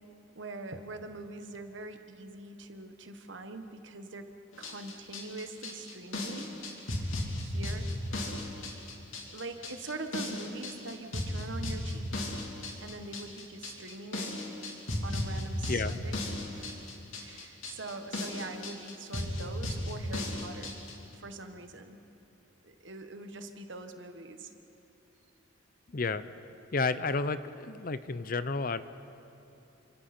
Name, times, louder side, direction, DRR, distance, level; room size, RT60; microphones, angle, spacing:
voice 1, 0.3-4.3 4.6-8.5 9.3-12.4 12.8-14.4 15.0-16.2 16.5-16.9 17.1-20.8 21.1-22.1 22.6-24.5, right 2 dB, 70° right, 7 dB, 1.5 m, -43 dB
sound 1, 4.5-20.9, left 1 dB, 80° left, 3.3 m, -35 dB
voice 2, 25.9-26.2 26.7-28.8, left 4 dB, 45° left, 13 dB, 0.6 m, -31 dB
28.5 x 25.5 x 4.4 m, 3.0 s
head